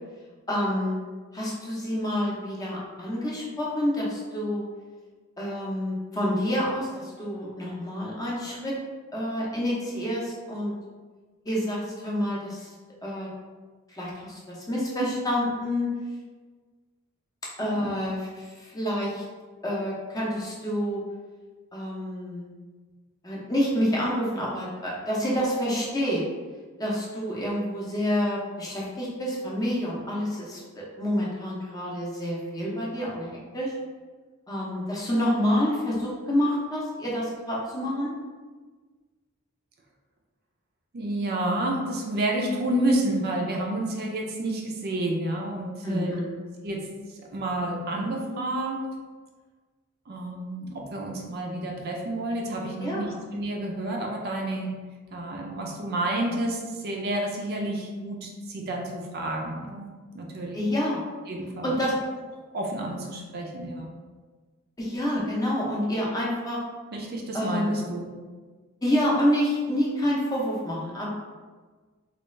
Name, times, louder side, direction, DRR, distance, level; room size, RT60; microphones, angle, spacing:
voice 1, 0.5-1.0 1.3-4.6 5.4-8.8 9.1-10.7 11.5-12.7 13.0-13.3 13.9-15.9 17.6-19.2 19.6-21.0 21.7-22.5 23.2-26.2 26.8-33.7 34.5-38.1 45.8-46.4 52.8-53.2 60.5-61.0 61.6-62.0 64.8-66.6 67.3-67.7 68.8-71.1, equal, 15° left, -5 dB, 0.6 m, -28 dB
voice 2, 40.9-46.1 46.6-48.8 50.1-54.8 55.1-59.9 60.1-60.6 61.3-61.8 62.5-63.9 66.9-68.1, right 1 dB, 45° right, 0 dB, 0.4 m, -30 dB
3.2 x 2.4 x 3.1 m, 1.4 s
head